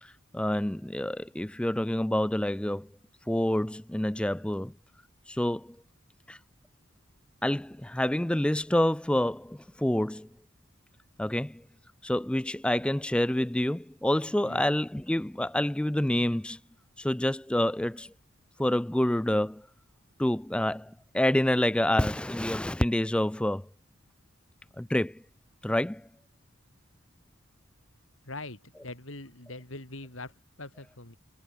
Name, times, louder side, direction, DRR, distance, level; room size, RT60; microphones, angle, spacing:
voice 1, 0.0-2.9 3.3-4.7 5.3-5.8 6.3-6.4 7.4-10.3 11.2-11.6 12.0-16.6 17.0-18.1 18.6-19.6 20.2-23.7 24.8-25.2 25.6-26.1, left 1 dB, 5° left, 0.3 m, -27 dB
voice 2, 28.2-31.2, left 2 dB, 75° left, 5.1 m, -43 dB
head